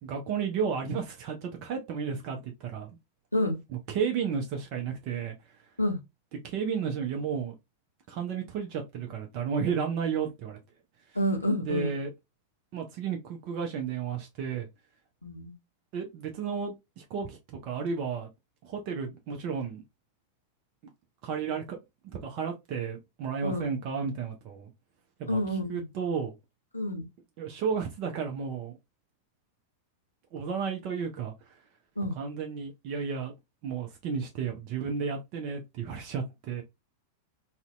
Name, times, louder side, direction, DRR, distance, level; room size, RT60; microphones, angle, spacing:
voice 1, 0.0-2.9 3.9-5.3 6.4-7.6 8.1-10.6 11.5-12.1 12.7-14.7 15.9-18.3 18.6-19.8 21.2-21.8 22.1-24.7 25.2-25.4 25.7-26.3 27.4-28.7 30.3-31.5 32.2-33.3 33.6-36.6, right 6 dB, 45° right, 0.5 m, -33 dB
voice 2, 11.1-11.9 15.2-15.5 23.4-23.7 25.3-25.8 26.7-27.0 32.0-32.1, left 1 dB, 85° left, 0.6 m, -28 dB
2.5 x 2.1 x 2.3 m
figure-of-eight pair, 90°, 0 cm